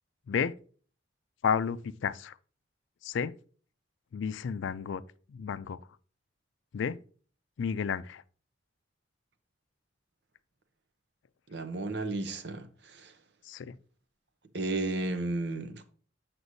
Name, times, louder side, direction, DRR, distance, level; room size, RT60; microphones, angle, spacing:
voice 1, 1.4-2.4 3.0-3.3 4.1-5.0 5.3-5.8 6.7-7.0 7.6-8.2 13.4-13.8, left 6 dB, 75° left, 0.4 m, -31 dB
voice 2, 11.5-13.1 14.5-15.8, right 2 dB, 60° right, 0.7 m, -33 dB
7.9 x 5.9 x 2.6 m
head